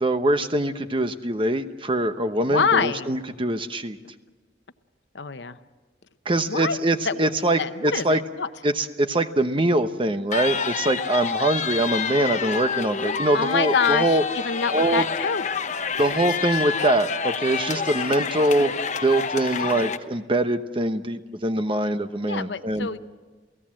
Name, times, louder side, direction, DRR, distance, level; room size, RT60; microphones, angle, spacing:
voice 1, 0.0-4.0 6.3-8.2 8.6-14.2 14.7-15.0 16.0-18.7 19.0-22.9, right 1 dB, 30° right, 9 dB, 1.0 m, -23 dB
voice 2, 2.5-3.1 5.1-5.6 6.5-6.8 7.0-7.3 7.6-8.5 13.3-15.5 22.2-23.0, left 5 dB, 85° left, 12 dB, 0.8 m, -26 dB
sound 1, 10.3-20.0, left 6 dB, 45° left, 1.0 m, -28 dB
28.5 x 17.0 x 7.6 m, 1.3 s
head